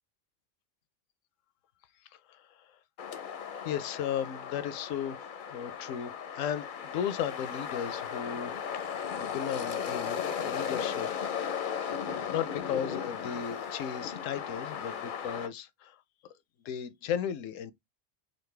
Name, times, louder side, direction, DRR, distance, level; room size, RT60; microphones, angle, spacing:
voice 1, 2.3-2.7 3.6-5.2 5.5-11.1 12.1-16.0 16.6-17.7, left 9 dB, 80° left, 0.9 m, -35 dB
sound 1, 3.0-15.5, left 7 dB, 55° left, 0.6 m, -36 dB
4.1 x 2.5 x 3.2 m
omnidirectional pair, 1.3 m